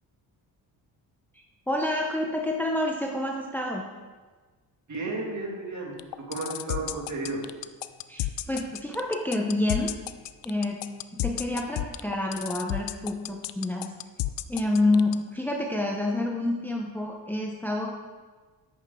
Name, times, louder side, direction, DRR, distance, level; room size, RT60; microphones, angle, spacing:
voice 1, 1.7-3.8 8.1-9.9 10.4-10.8 11.2-13.9 14.5-17.9, left 2 dB, 5° left, 1 dB, 0.9 m, -28 dB
voice 2, 4.9-5.9 6.3-7.4, right 3 dB, 40° right, -1 dB, 2.6 m, -32 dB
sound 1, 6.0-15.2, left 16 dB, 75° left, 0.6 m, -31 dB
10.5 x 8.2 x 3.8 m, 1.3 s
cardioid pair, 90°, 43 cm